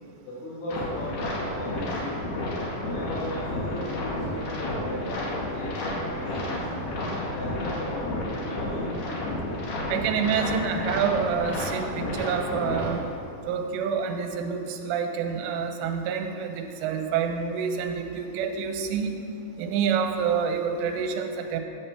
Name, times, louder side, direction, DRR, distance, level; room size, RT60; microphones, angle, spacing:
voice 1, 0.2-2.2 2.8-6.7 7.2-8.9, equal, 85° left, -9 dB, 3.9 m, -36 dB
sound 1, 0.7-12.9, left 1 dB, 70° left, 2.0 m, -31 dB
voice 2, 9.9-13.0 13.5-19.1 19.6-21.6, right 6 dB, 80° right, 4 dB, 2.8 m, -27 dB
9.9 x 7.3 x 3.3 m, 2.6 s
omnidirectional pair, 5.1 m